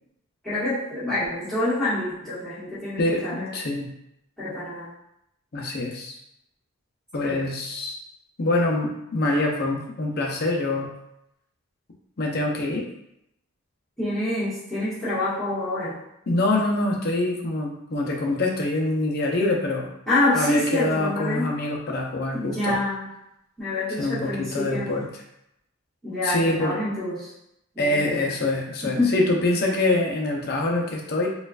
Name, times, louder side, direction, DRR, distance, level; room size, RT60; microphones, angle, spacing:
voice 1, 0.4-3.5 4.4-4.9 7.2-7.4 14.0-15.9 20.1-21.5 22.3-23.1 23.6-25.0 26.0-27.3 27.7-28.3 28.8-29.1, left 2 dB, ahead, -14 dB, 1.4 m, -27 dB
voice 2, 3.0-3.9 5.5-6.1 7.1-7.9 8.4-10.9 12.2-12.9 16.3-19.9 20.3-22.8 24.0-25.1 26.2-26.8 27.8-31.3, left 2 dB, 45° left, 0 dB, 0.6 m, -25 dB
4.2 x 2.5 x 2.4 m, 0.81 s
head